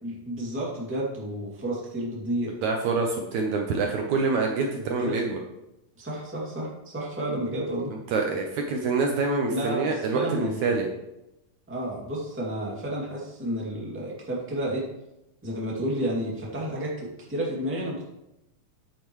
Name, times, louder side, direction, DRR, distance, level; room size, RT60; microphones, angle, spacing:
voice 1, 0.0-2.5 4.8-5.2 6.0-7.9 9.5-10.6 11.7-14.8 15.4-18.0, right 1 dB, 5° right, -5 dB, 1.7 m, -31 dB
voice 2, 2.6-5.4 7.9-10.9, right 4 dB, 70° right, 2 dB, 2.0 m, -26 dB
9.7 x 9.2 x 3.1 m, 0.90 s
omnidirectional pair, 3.8 m